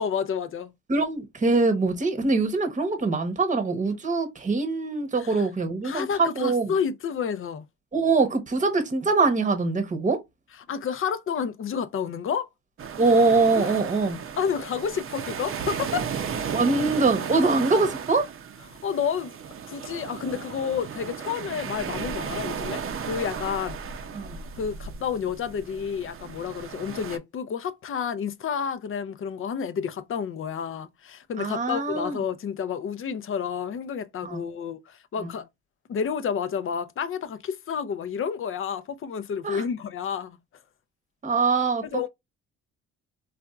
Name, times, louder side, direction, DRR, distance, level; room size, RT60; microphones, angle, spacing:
voice 1, 0.0-0.7 5.2-5.5 5.8-7.6 10.7-12.5 13.6-13.7 14.4-16.1 18.7-19.3 19.6-23.8 24.6-35.5 35.9-40.4 41.9-42.1, left 7 dB, 45° left, 0.5 m, -30 dB
voice 2, 0.9-6.7 7.9-10.2 13.0-14.2 16.5-18.3 24.1-24.4 31.4-32.2 34.2-34.4 39.4-39.6 41.2-41.8, right 3 dB, 25° right, 0.9 m, -23 dB
sound 1, 12.8-27.2, right 7 dB, 45° right, 0.6 m, -35 dB
4.1 x 2.4 x 2.3 m
cardioid pair, 90°, 30 cm